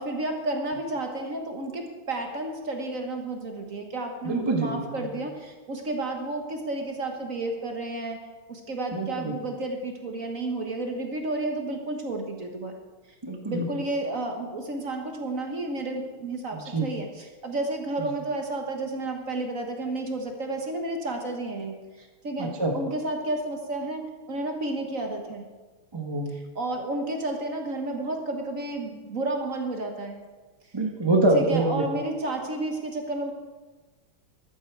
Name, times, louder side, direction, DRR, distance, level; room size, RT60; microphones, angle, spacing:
voice 1, 0.0-8.2 8.5-12.7 13.5-25.4 26.5-30.2 31.3-33.3, right 2 dB, 45° right, 3 dB, 1.4 m, -31 dB
voice 2, 4.2-5.1 8.9-9.3 13.2-13.7 16.5-16.9 18.0-18.1 22.4-22.8 25.9-26.3 30.7-31.8, right 2 dB, 20° right, 2 dB, 0.8 m, -25 dB
14.0 x 11.5 x 4.6 m, 1.3 s
omnidirectional pair, 2.4 m